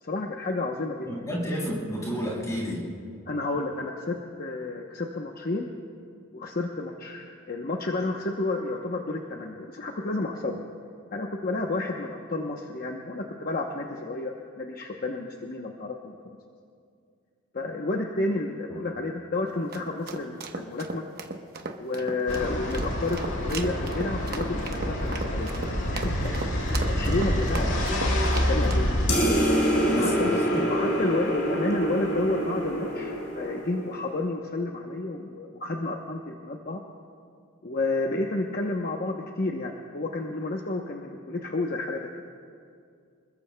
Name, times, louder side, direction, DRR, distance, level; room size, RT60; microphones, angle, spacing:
voice 1, 0.0-1.3 3.3-5.7 6.3-10.6 11.1-16.2 17.5-21.0 21.8-27.7 28.5-29.1 30.0-30.4 30.7-36.8 37.6-42.1, left 2 dB, 45° left, 1 dB, 0.8 m, -31 dB
voice 2, 1.1-2.9 27.5-27.8 29.7-30.6, equal, 15° left, -5 dB, 5.1 m, -31 dB
sound 1, 19.5-28.9, right 3 dB, 45° right, 1.0 m, -37 dB
sound 2, 22.3-29.1, equal, 90° left, 3.9 m, -27 dB
sound 3, 29.1-34.0, equal, 65° left, 4.4 m, -26 dB
29.5 x 21.0 x 2.2 m, 2.3 s
head